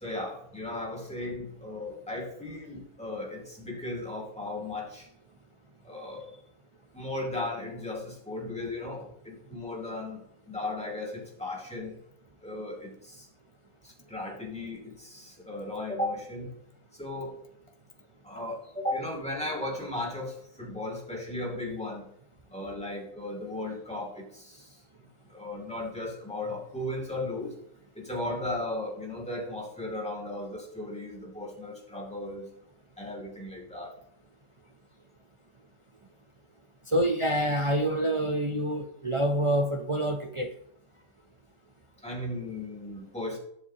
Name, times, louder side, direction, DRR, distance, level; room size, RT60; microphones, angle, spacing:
voice 1, 0.0-5.1 5.8-6.4 6.9-12.0 12.4-13.3 13.8-16.5 16.9-17.4 18.2-22.1 22.5-24.8 25.3-27.6 27.9-32.5 33.0-33.9 42.0-43.4, left 2 dB, 5° left, 2.6 m, -36 dB
voice 2, 36.9-40.5, right 1 dB, 45° right, 0.4 m, -27 dB
20.0 x 7.2 x 2.9 m
omnidirectional pair, 1.7 m